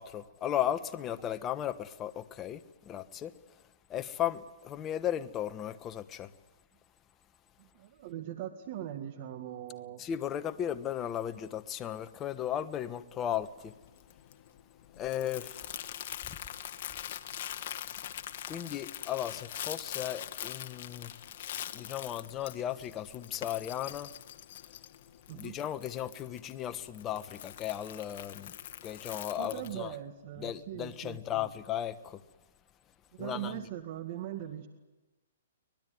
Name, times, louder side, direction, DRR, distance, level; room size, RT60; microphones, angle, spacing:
voice 1, 0.0-3.3 3.9-6.3 10.0-13.7 15.0-15.9 16.3-16.4 18.5-21.1 21.7-24.1 25.3-28.6 28.8-29.9 30.4-32.2 33.2-33.6, left 11 dB, 20° left, 1.2 m, -36 dB
voice 2, 7.6-10.1 25.3-25.6 29.4-31.5 33.1-34.7, right 11 dB, 45° right, 2.0 m, -41 dB
Crumpling crinkling, 13.3-29.8, left 11 dB, 50° left, 1.6 m, -43 dB
24.0 x 20.5 x 9.5 m
hypercardioid pair, 150°, 0 cm